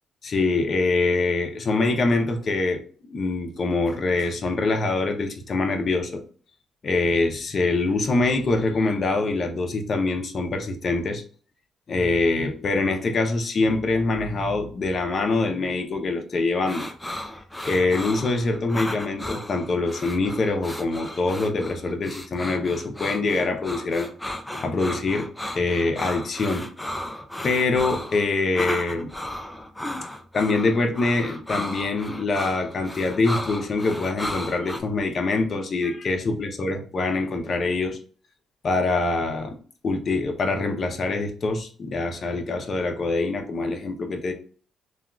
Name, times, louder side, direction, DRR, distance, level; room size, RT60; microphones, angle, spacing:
voice 1, 0.2-2.8 3.1-6.2 6.8-11.2 11.9-16.9 17.6-24.1 24.6-25.3 25.5-26.7 27.4-29.1 30.3-38.0 38.6-39.6 39.8-44.3, left 3 dB, 45° left, 4 dB, 0.7 m, -24 dB
sound 1, 16.6-34.8, left 1 dB, 10° left, 0.4 m, -34 dB
3.4 x 2.3 x 2.3 m, 0.42 s
cardioid pair, 90°, 0 cm